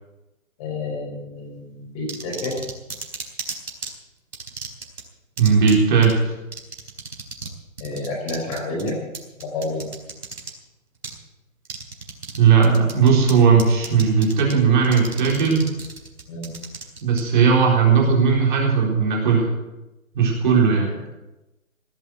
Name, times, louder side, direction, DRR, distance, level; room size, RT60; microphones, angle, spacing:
voice 1, 0.6-2.5 7.8-9.0 9.4-9.8 16.3-16.5, left 2 dB, 25° left, 0 dB, 5.2 m, -29 dB
sound 1, 2.1-3.9 4.3-5.0 5.4-5.8 6.0-6.1 6.5-7.5 7.8-10.5 11.0-11.2 11.6-12.4 12.6-13.3 13.6-14.5 14.8-17.2, right 4 dB, 85° right, 4.3 m, -34 dB
voice 2, 5.4-6.2 12.4-15.7 17.0-19.5 20.1-20.9, right 6 dB, 35° right, -1 dB, 4.0 m, -17 dB
17.5 x 9.2 x 7.8 m, 0.99 s
hypercardioid pair, 160°, 42 cm